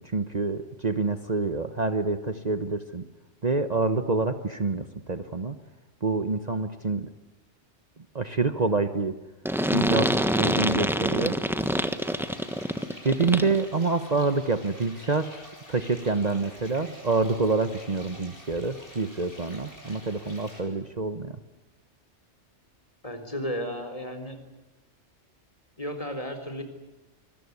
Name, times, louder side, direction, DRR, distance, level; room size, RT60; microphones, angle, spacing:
voice 1, 0.0-3.0 3.4-5.6 6.0-7.1 8.1-9.2 9.7-11.4 13.0-21.4, right 3 dB, 40° right, 9 dB, 1.2 m, -27 dB
sound 1, 9.4-13.6, equal, ahead, 1.3 m, -26 dB
sound 2, 11.6-20.6, equal, 50° left, 8.3 m, -48 dB
voice 2, 23.0-24.4 25.8-26.6, equal, 30° left, 6 dB, 4.3 m, -33 dB
26.0 x 21.5 x 9.7 m, 1.1 s
omnidirectional pair, 1.2 m